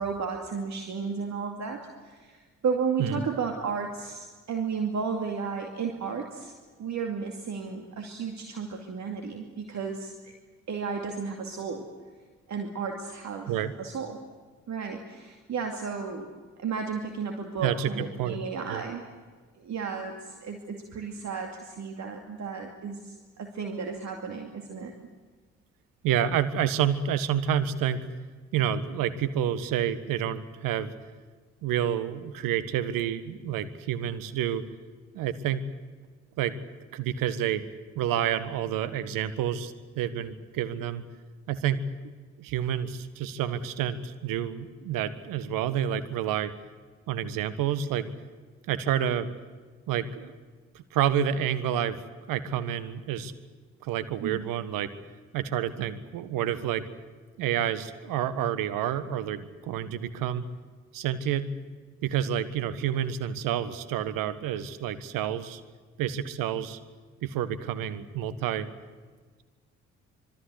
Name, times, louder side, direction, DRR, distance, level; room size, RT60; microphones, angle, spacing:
voice 1, 0.0-6.5 6.8-10.3 10.7-11.9 12.5-13.5 13.8-14.2 14.7-19.1 19.6-24.9 54.2-54.5, right 5 dB, 50° right, 3 dB, 2.4 m, -33 dB
voice 2, 17.6-18.4 18.7-18.8 26.0-28.0 28.5-30.9 31.6-34.6 35.1-35.6 36.4-36.5 36.9-37.6 37.9-41.0 41.5-41.8 42.4-46.5 47.1-48.1 48.7-49.3 49.9-50.3 50.7-52.0 52.3-53.3 53.8-54.9 55.3-56.9 57.4-60.4 60.9-61.5 62.0-65.6 66.0-66.8 67.2-68.7, right 9 dB, 65° right, 14 dB, 1.6 m, -29 dB
26.0 x 22.5 x 8.1 m, 1.4 s
figure-of-eight pair, 45°, 36 cm